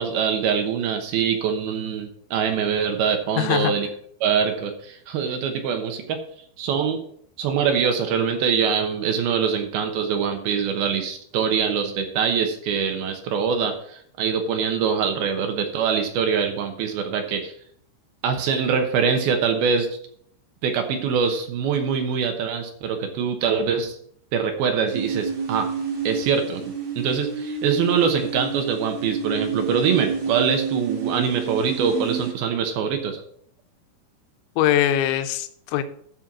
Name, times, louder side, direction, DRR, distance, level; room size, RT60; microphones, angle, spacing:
voice 1, 0.0-3.9 4.2-6.2 6.6-7.0 7.4-17.5 18.2-19.9 20.6-24.0 24.3-25.7 26.0-33.2, right 6 dB, 70° right, 5 dB, 2.4 m, -24 dB
voice 2, 3.4-3.7 34.6-35.8, left 12 dB, 80° left, 9 dB, 3.0 m, -22 dB
sound 1, 24.9-32.3, right 5 dB, 45° right, 3.4 m, -29 dB
12.5 x 4.4 x 6.0 m, 0.63 s
omnidirectional pair, 5.4 m